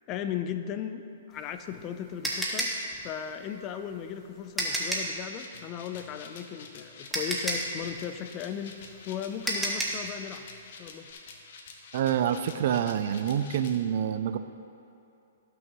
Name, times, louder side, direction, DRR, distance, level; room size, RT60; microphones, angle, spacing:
voice 1, 0.1-2.7 3.0-8.8 9.1-10.5 10.8-11.1, left 9 dB, 30° left, 9 dB, 0.5 m, -36 dB
sound 1, 1.3-5.2 6.6-6.7 7.1-10.1, right 1 dB, 5° right, 1.4 m, -31 dB
sound 2, 5.3-13.8, left 4 dB, 55° left, 1.1 m, -48 dB
voice 2, 11.9-14.4, right 9 dB, 55° right, 11 dB, 0.5 m, -27 dB
18.0 x 6.2 x 3.1 m, 2.8 s
hypercardioid pair, 140°, 0 cm